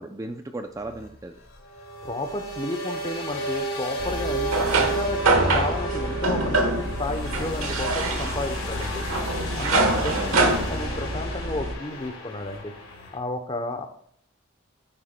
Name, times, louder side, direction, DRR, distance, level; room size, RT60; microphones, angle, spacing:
voice 1, 0.0-1.3 9.8-10.5, right 2 dB, 15° right, 6 dB, 0.4 m, -36 dB
sound 1, 0.7-13.2, right 1 dB, 75° left, 2.2 m, -33 dB
voice 2, 2.0-9.0 9.6-12.7 13.1-13.9, left 2 dB, 25° left, 6 dB, 0.7 m, -32 dB
sound 2, 4.0-11.7, right 2 dB, 85° right, 1.2 m, -25 dB
9.0 x 8.9 x 2.2 m, 0.66 s
head